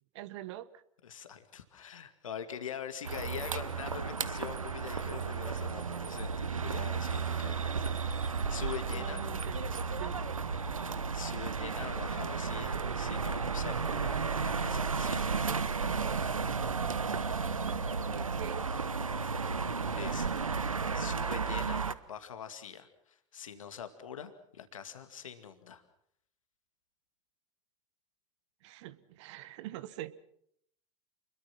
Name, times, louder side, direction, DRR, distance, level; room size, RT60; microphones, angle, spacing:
voice 1, 0.1-0.8 8.9-10.2 18.1-18.7 28.6-30.1, right 14 dB, 60° right, 15 dB, 1.3 m, -44 dB
voice 2, 1.0-9.3 11.1-15.6 19.2-19.6 19.9-20.3 20.9-25.8, left 8 dB, 75° left, 9 dB, 2.2 m, -44 dB
sound 1, 3.0-21.9, right 5 dB, 85° right, 1.0 m, -33 dB
29.0 x 22.0 x 6.0 m, 0.70 s
figure-of-eight pair, 80°, 17 cm